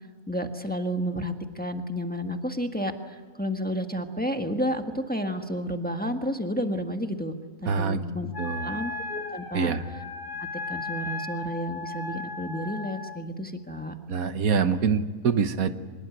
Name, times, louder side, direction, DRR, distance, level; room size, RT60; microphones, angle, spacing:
voice 1, 0.3-7.3 7.6-9.7 10.4-13.9, equal, 5° left, 5 dB, 1.5 m, -31 dB
voice 2, 7.7-8.0 8.4-8.8 9.5-9.8 14.1-15.7, right 6 dB, 90° right, 10 dB, 1.6 m, -25 dB
Wind instrument woodwind instrument, 8.3-13.2, left 3 dB, 35° left, 2.7 m, -36 dB
25.0 x 21.0 x 9.3 m, 1.4 s
omnidirectional pair, 1.5 m